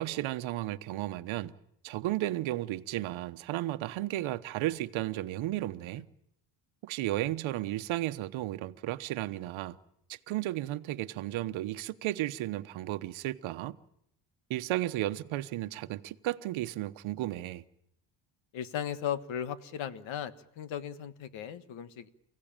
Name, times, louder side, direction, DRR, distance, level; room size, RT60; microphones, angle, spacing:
voice 1, 0.0-1.5 1.8-6.1 6.8-9.8 10.1-13.8 14.5-17.6, right 15 dB, 70° right, 1.1 m, -34 dB
voice 2, 18.5-22.1, left 9 dB, 65° left, 1.6 m, -37 dB
29.0 x 16.5 x 8.9 m
cardioid pair, 130°, 49 cm